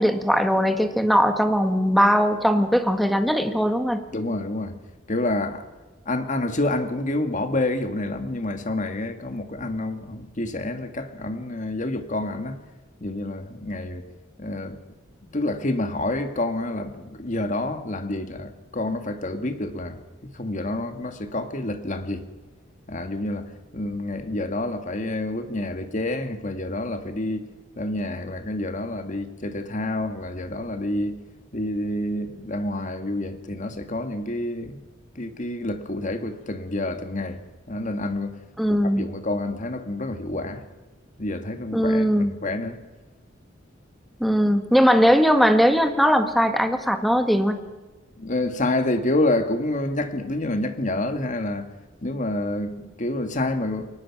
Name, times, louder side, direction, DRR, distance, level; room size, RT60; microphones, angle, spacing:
voice 1, 0.0-4.1 38.6-39.1 41.7-42.3 44.2-47.6, equal, ahead, 1.6 m, -20 dB
voice 2, 4.1-4.7 5.1-5.6 6.1-12.6 13.0-14.0 14.4-14.8 15.2-20.0 20.3-22.2 22.9-27.5 27.8-31.2 31.5-34.8 35.2-37.4 37.7-38.3 38.7-40.6 41.2-42.8 48.2-51.7 52.0-53.9, left 2 dB, 40° left, 1.9 m, -28 dB
22.5 x 19.5 x 6.0 m
head